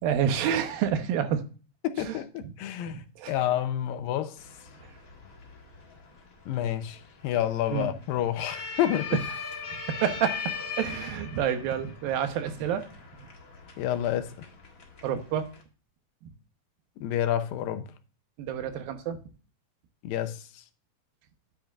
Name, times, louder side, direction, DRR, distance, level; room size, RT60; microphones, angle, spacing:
voice 1, 0.0-1.4 2.0-2.2 2.4-2.5 2.9-3.3 7.7-7.9 9.1-9.2 9.9-12.9 15.0-15.5 18.4-19.2, right 8 dB, 85° right, 2.9 m, -28 dB
voice 2, 1.8-3.0 3.3-4.4 6.5-9.1 13.8-14.3 17.0-17.9 20.0-20.4, left 11 dB, 85° left, 2.6 m, -29 dB
sound 1, 4.4-15.6, left 5 dB, 35° left, 1.5 m, -40 dB
10.0 x 8.4 x 2.4 m
omnidirectional pair, 4.1 m